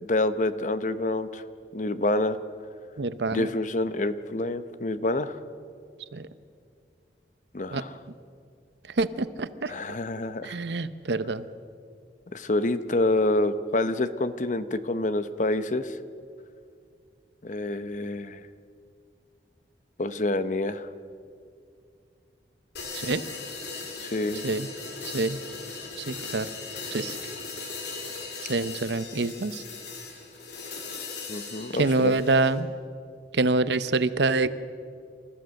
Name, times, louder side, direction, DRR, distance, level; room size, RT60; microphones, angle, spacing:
voice 1, 0.0-1.4 1.7-2.4 3.3-5.4 7.5-7.9 9.7-10.6 12.3-16.0 17.4-18.4 20.0-20.9 24.0-24.5 31.3-32.1, left 2 dB, 45° left, 12 dB, 0.8 m, -27 dB
voice 2, 3.0-3.5 6.1-6.3 7.7-7.8 8.9-9.7 10.4-11.5 22.9-23.2 24.3-24.7 25.1-25.4 26.0-26.5 26.9-27.2 28.4-29.6 31.7-32.7 33.3-34.5, right 3 dB, 75° right, 14 dB, 0.8 m, -26 dB
sound 1, 22.7-32.6, left 4 dB, 65° left, 3.0 m, -38 dB
28.5 x 14.0 x 6.5 m, 2.3 s
head